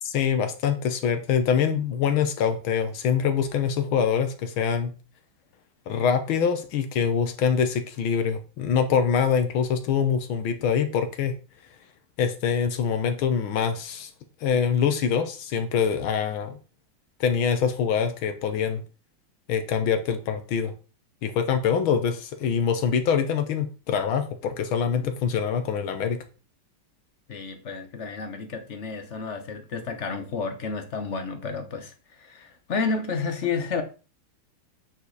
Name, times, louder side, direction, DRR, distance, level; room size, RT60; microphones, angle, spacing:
voice 1, 0.0-4.9 5.9-11.3 12.2-14.1 14.4-16.6 17.2-18.8 19.5-20.7 21.2-26.2, left 7 dB, 70° left, 1.7 m, -24 dB
voice 2, 27.3-33.8, left 4 dB, 45° left, 1.0 m, -31 dB
8.5 x 4.9 x 4.0 m
omnidirectional pair, 2.4 m